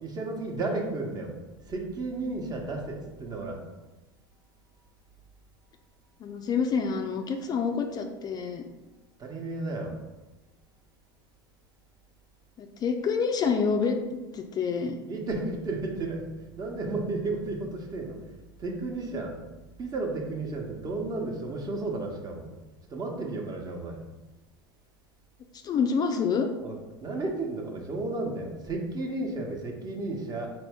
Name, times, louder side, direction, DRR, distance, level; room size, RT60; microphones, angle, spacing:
voice 1, 0.0-1.3 1.7-3.6 9.2-10.0 15.1-16.2 16.6-18.2 18.6-19.3 19.8-22.5 22.9-24.0 26.6-30.5, right 2 dB, 35° right, 2 dB, 0.9 m, -33 dB
voice 2, 6.2-8.6 12.6-14.0 14.3-15.0 25.6-26.5, left 5 dB, 35° left, 5 dB, 0.4 m, -27 dB
4.1 x 2.6 x 3.4 m, 1.1 s
hypercardioid pair, 85°, 12 cm